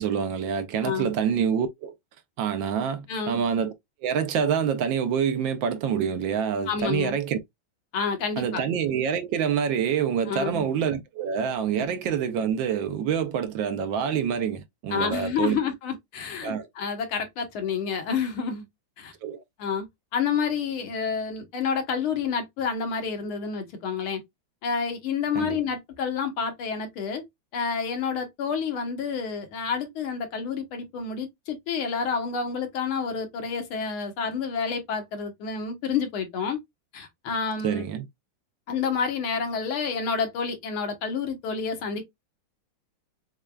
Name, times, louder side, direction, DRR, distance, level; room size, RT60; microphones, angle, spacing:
voice 1, 0.0-1.9 2.4-3.7 4.0-7.4 8.4-15.6 16.4-16.7 19.2-19.4 25.3-25.6 37.6-38.1, right 7 dB, 75° right, 1.3 m, -26 dB
voice 2, 3.1-3.4 6.7-7.2 7.9-8.6 10.3-10.7 11.8-11.9 14.9-18.6 19.0-19.1 19.6-19.9 20.1-24.2 24.6-27.2 27.5-36.6 36.9-37.8 38.7-42.0, left 6 dB, 80° left, 1.9 m, -29 dB
6.5 x 2.2 x 2.2 m
omnidirectional pair, 2.3 m